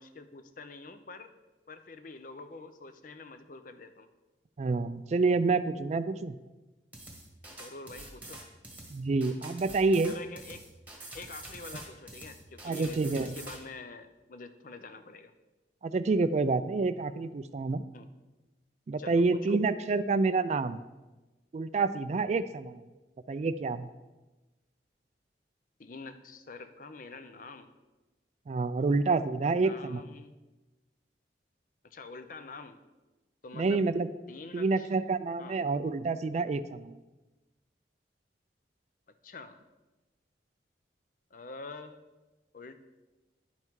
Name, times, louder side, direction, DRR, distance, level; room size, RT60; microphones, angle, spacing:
voice 1, 0.0-1.3 1.7-4.1 7.5-8.4 10.1-10.7 11.1-15.3 17.9-18.1 19.0-19.5 25.8-27.7 29.5-30.4 31.9-32.8 33.4-33.9 34.3-34.9 35.4-35.6 39.2-39.6 41.3-42.0 42.5-42.8, left 3 dB, 50° left, 10 dB, 0.6 m, -46 dB
voice 2, 4.6-6.3 8.9-10.1 12.6-13.3 15.8-17.8 18.9-20.8 21.5-22.8 23.3-23.9 28.5-30.0 33.5-34.1 34.5-36.9, right 3 dB, 40° right, 13 dB, 0.3 m, -28 dB
sound 1, 6.9-13.6, right 2 dB, 10° right, 1.3 m, -46 dB
10.5 x 5.5 x 4.7 m, 1.1 s
head